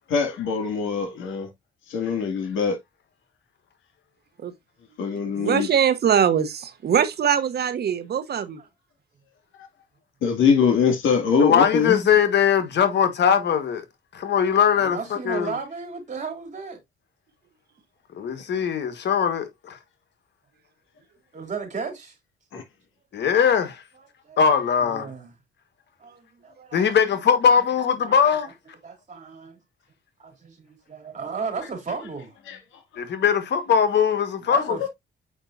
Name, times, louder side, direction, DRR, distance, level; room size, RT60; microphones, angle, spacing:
voice 1, 0.1-1.5 1.9-2.8 5.0-5.7 10.2-12.0 22.5-22.6 32.5-32.6, left 6 dB, 80° left, 2.2 m, -22 dB
voice 2, 5.4-8.6, right 8 dB, 55° right, 1.0 m, -22 dB
voice 3, 11.4-13.8 14.1-15.5 18.1-19.8 23.1-23.8 24.4-25.1 26.7-28.5 33.0-34.8, left 7 dB, 60° left, 1.4 m, -21 dB
voice 4, 14.8-16.8 21.3-22.1 23.2-23.3 24.2-24.5 24.8-25.3 26.0-27.0 28.0-28.2 28.8-29.6 30.2-32.3 34.4-34.9, right 5 dB, 40° right, 3.2 m, -34 dB
7.2 x 5.2 x 2.5 m
cardioid pair, 90°, 20 cm